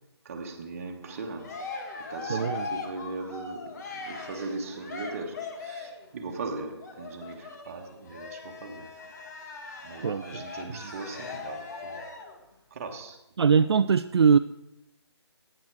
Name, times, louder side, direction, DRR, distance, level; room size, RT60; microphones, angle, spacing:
voice 1, 0.2-1.6 2.0-8.9 9.8-12.0 12.7-13.2, right 3 dB, 35° right, 1.4 m, -39 dB
Cheering, 1.0-6.1 6.8-12.4, left 3 dB, 40° left, 1.5 m, -40 dB
voice 2, 2.3-2.7 10.0-10.4 10.8-10.9 13.4-14.4, right 6 dB, 70° right, 0.4 m, -22 dB
11.5 x 9.0 x 4.7 m
hypercardioid pair, 160°, 14 cm